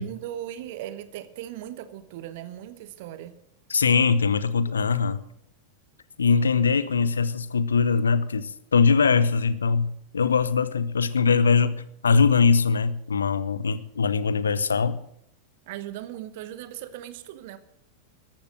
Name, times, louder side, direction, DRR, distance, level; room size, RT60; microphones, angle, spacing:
voice 1, 0.0-3.3 15.7-17.6, right 12 dB, 50° right, 1.2 m, -38 dB
voice 2, 3.7-5.2 6.2-15.0, left 5 dB, 70° left, 0.8 m, -22 dB
13.5 x 12.0 x 6.3 m
figure-of-eight pair, 90°, 0 cm